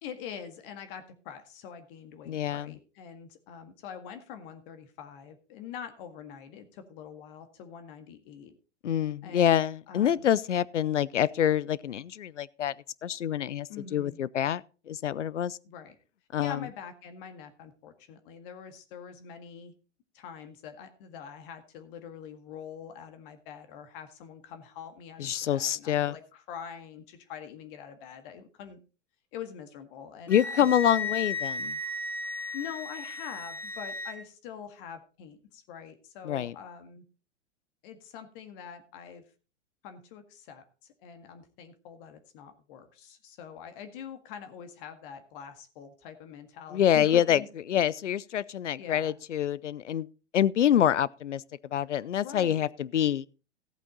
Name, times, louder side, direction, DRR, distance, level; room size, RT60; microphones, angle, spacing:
voice 1, 0.0-8.5 9.2-9.6 9.9-10.3 13.7-14.2 15.6-16.0 16.4-19.7 20.1-28.8 29.3-31.1 32.5-37.0 37.8-39.2 39.8-40.6 41.0-47.8 48.8-49.2 52.1-52.7, left 8 dB, 50° left, 1.9 m, -44 dB
voice 2, 2.3-2.8 8.8-12.7 13.0-15.6 16.3-16.7 25.2-26.1 30.3-31.8 36.2-36.5 46.7-47.4 47.7-50.1 50.3-51.4 51.7-53.3, left 10 dB, 80° left, 0.6 m, -26 dB
Wind instrument woodwind instrument, 30.3-34.2, left 3 dB, 5° left, 2.2 m, -35 dB
14.5 x 8.5 x 4.0 m
figure-of-eight pair, 105°, 35 cm